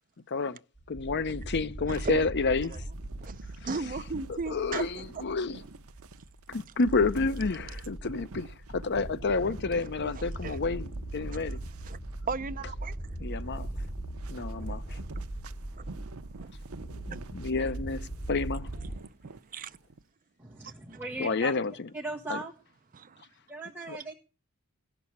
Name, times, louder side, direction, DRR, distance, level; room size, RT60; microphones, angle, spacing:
voice 1, 0.3-0.6 0.9-2.7 4.3-5.6 6.5-11.6 13.2-13.7 14.3-15.0 17.1-18.7 21.2-21.9 22.3-22.4 23.9-24.0, left 4 dB, 55° left, 0.7 m, -30 dB
sound 1, 0.8-19.0, right 1 dB, 25° left, 3.0 m, -40 dB
voice 2, 1.9-2.2 2.6-2.8 3.2-5.2 10.0-10.6 11.3-11.6 11.8-12.0 12.3-13.0 13.6-13.7 14.6-15.3 15.7-16.0 16.4-16.5 17.6-17.7 19.2-19.8 20.9-21.0 22.9-23.2, right 4 dB, 40° right, 0.6 m, -37 dB
sound 2, 2.9-20.0, right 3 dB, 80° right, 0.8 m, -49 dB
voice 3, 20.4-21.6 21.9-22.5 23.5-24.1, right 2 dB, 10° right, 1.5 m, -38 dB
16.5 x 6.2 x 8.5 m
head